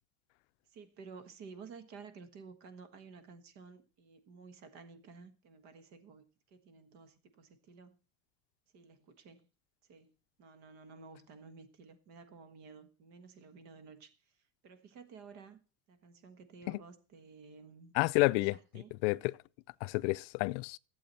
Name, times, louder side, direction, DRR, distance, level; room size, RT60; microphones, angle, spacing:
voice 1, 0.7-8.0 8.7-9.5 9.9-10.1 10.4-15.6 15.9-17.9 18.3-18.9, right 5 dB, 50° right, 1.5 m, -53 dB
voice 2, 17.9-18.5 19.0-19.3 19.8-20.8, left 23 dB, 75° left, 0.5 m, -29 dB
12.0 x 7.9 x 4.2 m
cardioid pair, 160°, 36 cm